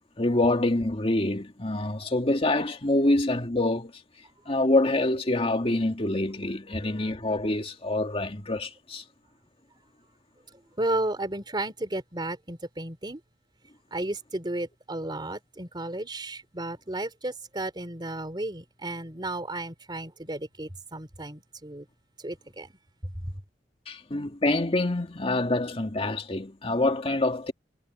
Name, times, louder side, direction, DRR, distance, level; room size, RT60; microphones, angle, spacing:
voice 1, 0.2-3.9 4.5-9.0 23.9-27.5, left 2 dB, 35° left, 2.2 m, -26 dB
voice 2, 10.8-13.2 13.9-21.9 22.2-22.7, right 2 dB, 25° right, 3.5 m, -33 dB
head